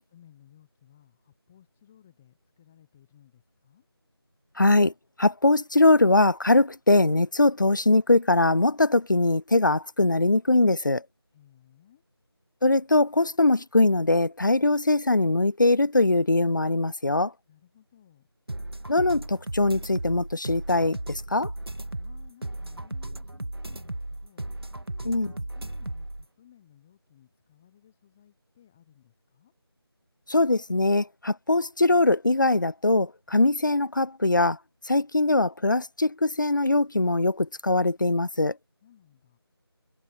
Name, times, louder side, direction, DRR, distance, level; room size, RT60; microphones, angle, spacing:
voice 1, 0.1-3.8 11.3-12.0 17.5-18.3 22.0-29.5 38.8-39.4, left 10 dB, 5° left, 0.8 m, -58 dB
voice 2, 4.6-4.9 5.2-11.0 12.6-17.3 18.9-21.5 25.1-25.3 30.3-34.6 34.9-38.5, left 2 dB, 50° left, 0.6 m, -22 dB
sound 1, 18.5-26.2, right 1 dB, 65° right, 1.9 m, -36 dB
figure-of-eight pair, 170°, 13 cm